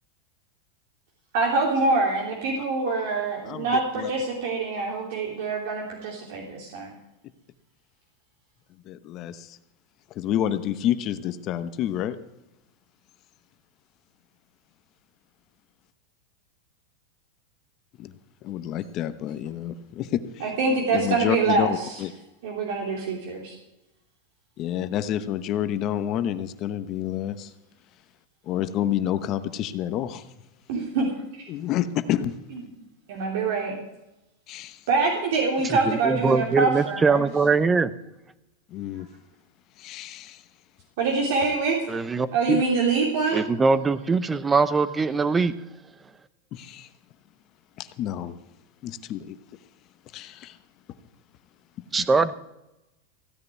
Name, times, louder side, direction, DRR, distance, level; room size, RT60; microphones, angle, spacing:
voice 1, 1.3-6.9 20.4-22.0 22.4-23.5 30.7-31.1 31.4-31.5 33.1-33.7 34.9-37.2 41.0-41.8 42.3-43.4, right 4 dB, 65° right, -1 dB, 3.1 m, -25 dB
voice 2, 3.5-4.1 8.9-9.6 10.1-12.2 18.0-18.1 18.4-20.5 20.9-22.1 24.6-27.5 28.5-30.2 31.5-32.3 34.5-34.8 38.7-39.1 39.8-40.4 46.5-46.9 47.8-48.4 48.8-49.4 50.1-50.6, left 11 dB, 40° left, 12 dB, 0.8 m, -29 dB
voice 3, 35.6-37.9 41.9-42.6 43.3-45.5 51.9-52.3, right 4 dB, 15° right, 15 dB, 0.6 m, -22 dB
15.5 x 6.6 x 9.1 m, 0.94 s
supercardioid pair, 140°, 0 cm